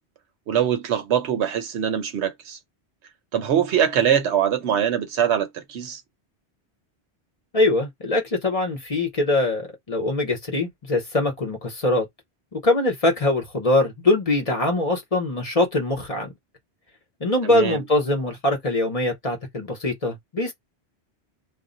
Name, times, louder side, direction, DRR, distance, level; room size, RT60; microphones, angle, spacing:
voice 1, 0.5-2.6 3.3-6.0 17.4-17.8, right 9 dB, 80° right, 1.0 m, -23 dB
voice 2, 7.5-12.1 12.5-16.3 17.2-20.5, left 2 dB, 35° left, 0.8 m, -23 dB
2.4 x 2.1 x 3.7 m
omnidirectional pair, 1.1 m